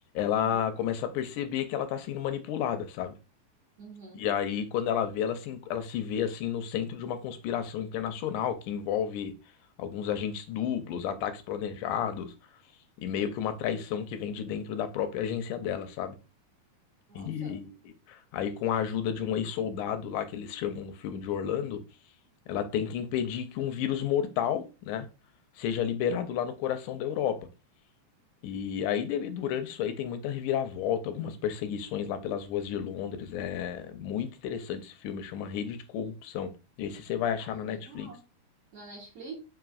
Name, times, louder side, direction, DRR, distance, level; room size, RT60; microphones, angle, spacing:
voice 1, 0.2-3.1 4.1-9.3 9.8-12.3 13.0-16.2 17.2-17.7 18.1-21.8 22.5-25.1 25.6-27.4 28.4-36.5 36.8-38.1, left 9 dB, 90° left, 2.1 m, -31 dB
voice 2, 3.8-4.2 17.1-17.6 37.4-38.2 38.7-39.4, right 3 dB, 65° right, 1.6 m, -46 dB
5.0 x 3.0 x 2.3 m
omnidirectional pair, 3.5 m